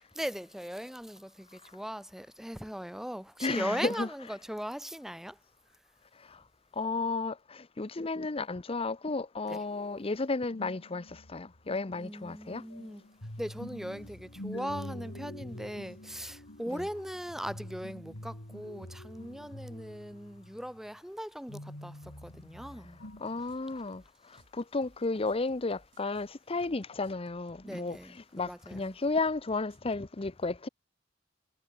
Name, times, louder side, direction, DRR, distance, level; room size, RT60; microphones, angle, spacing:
voice 1, 0.1-5.4 9.5-9.6 11.9-13.0 13.4-23.0 24.3-24.4 27.6-29.0, equal, ahead, 1.1 m, -39 dB
voice 2, 3.4-4.1 6.2-6.4 6.7-12.6 16.7-16.8 23.2-28.0 28.3-30.7, left 3 dB, 30° left, 0.7 m, -33 dB
sound 1, 10.5-20.9 21.5-23.5, left 1 dB, 80° left, 3.8 m, -46 dB
sound 2, 23.0-30.1, right 1 dB, 70° right, 7.2 m, -62 dB
head